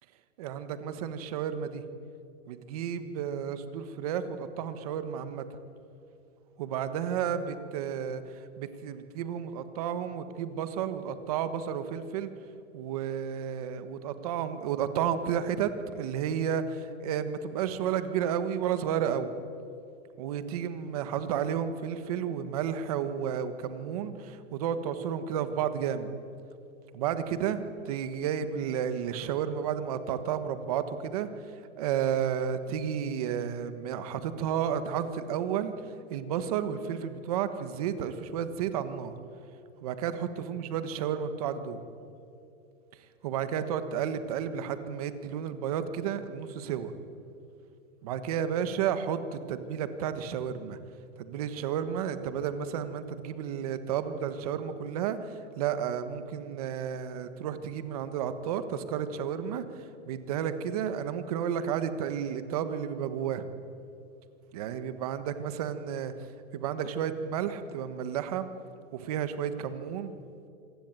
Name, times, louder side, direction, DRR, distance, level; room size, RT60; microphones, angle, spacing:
voice 1, 0.4-1.8 2.5-5.5 6.6-12.3 12.7-19.4 20.2-26.1 26.9-39.2 39.8-41.8 43.2-46.9 48.0-50.8 51.2-63.4 64.5-68.5 68.9-70.1, right 8 dB, 30° right, 11 dB, 1.4 m, -32 dB
27.0 x 20.5 x 9.1 m, 2.6 s
supercardioid pair, 180°, 37 cm